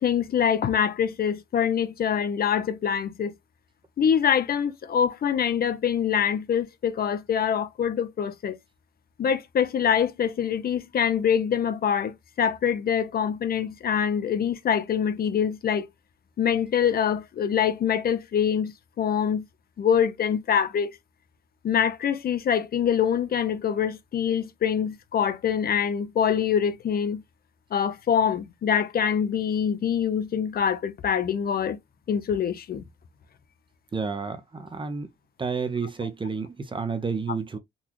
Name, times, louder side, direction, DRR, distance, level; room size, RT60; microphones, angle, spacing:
voice 1, 0.0-3.3 4.0-8.6 9.2-15.9 16.4-19.4 19.8-20.9 21.6-27.2 27.7-31.8 32.1-32.8, left 8 dB, 50° left, 0.6 m, -24 dB
voice 2, 33.9-35.1 35.4-37.6, right 5 dB, 25° right, 0.7 m, -30 dB
3.9 x 2.3 x 2.9 m
cardioid pair, 90°, 20 cm